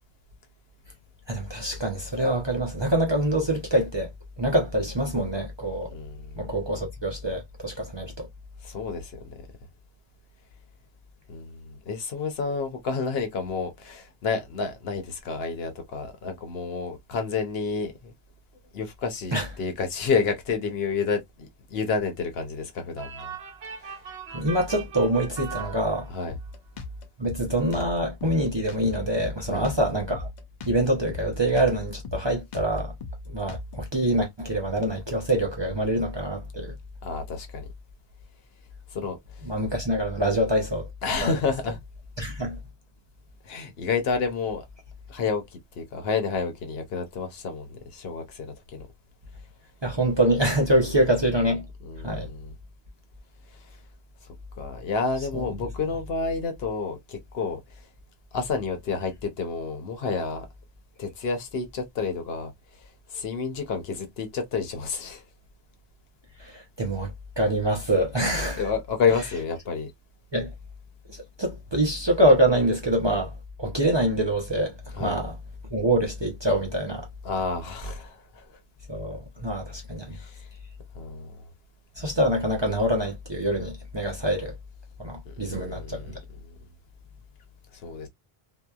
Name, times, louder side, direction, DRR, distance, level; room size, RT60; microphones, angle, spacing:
voice 1, 1.3-4.1 4.4-5.9 6.4-8.3 19.3-19.5 24.3-26.1 27.2-30.3 30.7-32.9 33.3-36.7 39.4-40.9 41.2-41.4 42.2-42.6 49.8-51.6 52.0-52.3 55.3-55.5 66.4-68.7 70.3-70.5 71.1-73.3 73.6-75.3 75.7-77.1 78.9-80.2 82.0-84.5 85.0-86.1, right 1 dB, 30° right, 0.6 m, -25 dB
voice 2, 5.9-6.4 8.6-9.4 11.3-18.1 18.7-23.3 23.8-24.0 26.1-26.3 29.5-29.7 37.0-37.7 38.9-39.5 41.0-41.8 43.4-44.6 45.1-45.4 45.8-48.9 50.7-50.8 51.8-52.5 53.5-53.8 54.6-57.8 58.3-60.4 61.0-65.2 68.6-69.9 75.0-75.2 77.2-78.5 80.1-80.5 80.9-81.3 85.3-86.2 86.4-86.6 87.7-88.1, left 5 dB, 70° left, 1.0 m, -30 dB
sound 1, 23.0-26.5, right 7 dB, 70° right, 1.0 m, -39 dB
Drum kit, 26.3-34.0, left 2 dB, 55° left, 0.6 m, -38 dB
2.8 x 2.2 x 2.2 m
omnidirectional pair, 1.1 m